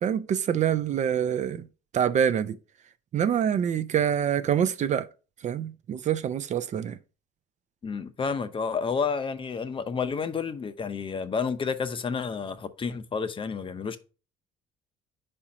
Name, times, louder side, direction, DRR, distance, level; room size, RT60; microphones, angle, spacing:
voice 1, 0.0-1.7 1.9-2.6 3.1-5.1 5.4-7.0, right 9 dB, 45° right, 0.5 m, -26 dB
voice 2, 7.8-14.0, left 5 dB, 30° left, 0.7 m, -30 dB
4.9 x 4.4 x 4.9 m
cardioid pair, 110°, 17 cm